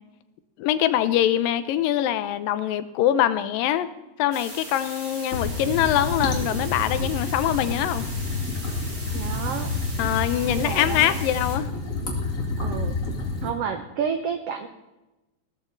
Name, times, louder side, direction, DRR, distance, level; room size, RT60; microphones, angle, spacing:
voice 1, 0.6-3.9 4.2-8.1 10.0-11.7, left 12 dB, 85° left, 13 dB, 2.5 m, -23 dB
sound 1, 4.3-11.6, right 1 dB, 20° right, 3.3 m, -39 dB
sound 2, 5.3-13.5, left 2 dB, 25° left, 2.5 m, -29 dB
voice 2, 9.1-9.7 10.5-11.2 12.6-13.0 13.4-14.7, right 7 dB, 85° right, 7 dB, 1.3 m, -30 dB
17.5 x 13.5 x 4.0 m, 1.0 s
omnidirectional pair, 4.0 m